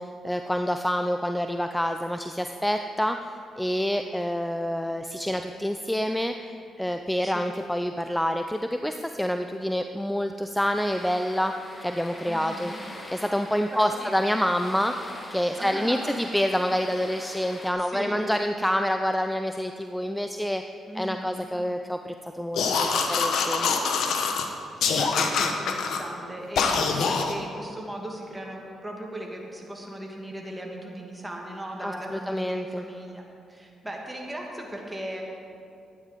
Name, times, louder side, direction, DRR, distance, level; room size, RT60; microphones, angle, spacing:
voice 1, 0.0-6.5 6.8-11.5 11.8-12.7 13.1-20.6 20.9-23.7 31.8-32.8, equal, 5° left, 7 dB, 0.5 m, -27 dB
voice 2, 7.2-7.6 12.3-12.8 13.7-14.2 15.6-16.1 17.8-18.2 20.9-21.5 24.9-33.2 33.5-35.2, right 1 dB, 10° right, -1 dB, 2.4 m, -38 dB
sound 1, 10.7-17.7, left 1 dB, 25° left, 1.8 m, -43 dB
sound 2, 22.5-24.5 24.8-26.0 26.6-27.3, left 5 dB, 70° left, 1.0 m, -24 dB
12.0 x 9.4 x 5.1 m, 2.5 s
supercardioid pair, 55°, 0 cm